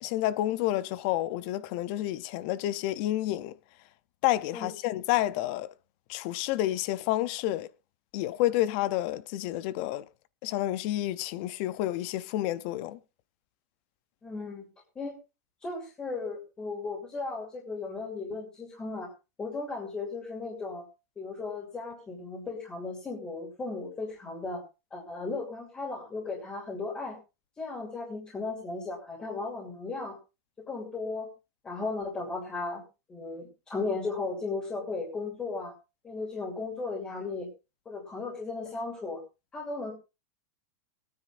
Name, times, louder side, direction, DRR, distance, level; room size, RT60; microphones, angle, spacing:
voice 1, 0.0-3.5 4.2-5.7 6.1-7.7 8.1-10.0 10.4-13.0, left 14 dB, 40° left, 0.6 m, -29 dB
voice 2, 14.2-14.6 14.9-15.2 15.6-19.1 19.4-20.8 21.2-24.6 24.9-27.2 27.6-30.2 30.6-31.3 31.6-32.8 33.1-35.7 36.0-37.5 37.8-39.2 39.5-39.9, left 3 dB, 15° left, 2.8 m, -36 dB
25.0 x 9.6 x 2.5 m
supercardioid pair, 170°, 8 cm